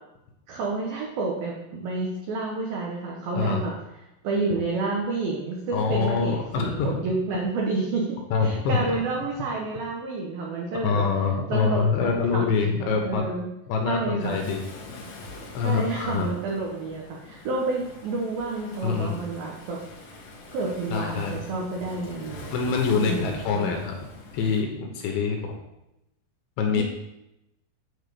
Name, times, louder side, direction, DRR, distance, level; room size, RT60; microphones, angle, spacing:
voice 1, 0.5-3.7 4.2-11.0 11.5-13.5 13.9-14.4 15.6-19.8 20.5-22.5 22.9-23.8 26.7-26.8, right 3 dB, 80° right, -1 dB, 2.1 m, -29 dB
voice 2, 5.7-7.1 8.3-8.9 10.8-13.2 13.7-14.6 15.5-16.3 18.8-19.2 20.9-21.4 22.5-23.9 24.3-25.6 26.6-26.8, left 5 dB, 75° left, 2 dB, 2.9 m, -25 dB
Waves surf, 14.2-24.6, left 2 dB, 60° left, 2.0 m, -44 dB
9.7 x 4.2 x 6.8 m, 0.90 s
omnidirectional pair, 5.8 m